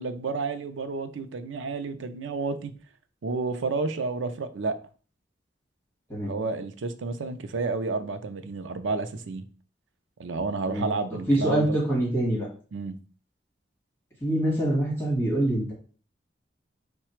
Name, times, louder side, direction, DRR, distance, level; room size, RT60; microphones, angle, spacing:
voice 1, 0.0-2.7 3.2-4.8 6.2-9.4 10.2-11.8 12.7-13.0, right 3 dB, 85° right, 9 dB, 0.5 m, -31 dB
voice 2, 11.3-12.5 14.2-15.7, right 1 dB, 15° left, -5 dB, 1.9 m, -25 dB
4.8 x 2.2 x 4.4 m, 0.40 s
head